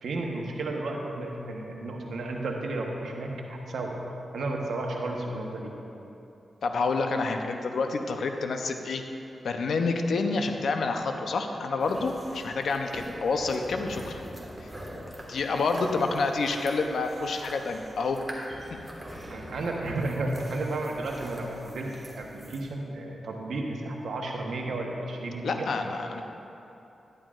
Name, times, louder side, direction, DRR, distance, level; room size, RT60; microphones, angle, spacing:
voice 1, 0.0-4.0 4.3-5.7 19.3-21.9 22.1-25.7, right 2 dB, 80° right, 0 dB, 1.1 m, -33 dB
voice 2, 6.6-9.0 9.4-14.2 15.3-18.2 25.4-26.2, left 3 dB, 80° left, 5 dB, 0.6 m, -28 dB
sound 1, 11.8-22.6, equal, 20° right, 1.6 m, -43 dB
11.0 x 10.5 x 2.5 m, 2.9 s
cardioid pair, 70°, 0 cm